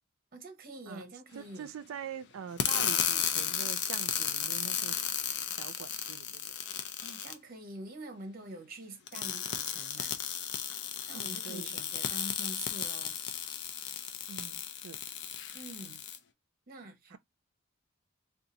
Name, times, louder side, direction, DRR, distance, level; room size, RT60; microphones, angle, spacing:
voice 1, 0.3-1.7 7.0-10.2 11.1-13.2 15.5-16.0 16.7-17.2, right 1 dB, 45° right, 0.8 m, -46 dB
voice 2, 1.4-5.0 5.6-6.5 9.1-9.3 11.1-11.7 14.3-15.0 17.1-17.2, right 7 dB, 80° right, 0.4 m, -44 dB
sound 1, 2.6-7.3 9.1-16.2, left 8 dB, 55° left, 0.5 m, -34 dB
2.7 x 2.4 x 3.9 m
head